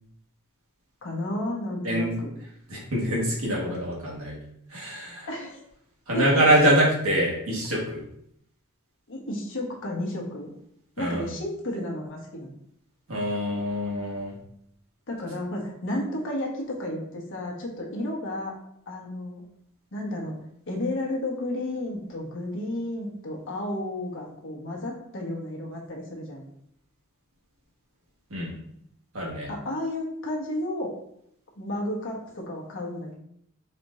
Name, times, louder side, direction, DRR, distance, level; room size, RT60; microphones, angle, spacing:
voice 1, 1.0-2.3 5.2-5.6 6.1-6.4 9.1-10.5 11.0-12.5 15.1-18.5 18.9-19.4 19.9-20.3 20.7-26.5 29.5-30.9 31.6-33.1, left 1 dB, 60° left, -1 dB, 1.1 m, -32 dB
voice 2, 2.7-4.4 4.7-5.3 6.1-8.0 11.0-11.3 13.1-14.3 28.3-28.5 29.1-29.5, right 1 dB, 70° right, -3 dB, 1.4 m, -24 dB
4.3 x 2.5 x 4.1 m, 0.72 s
head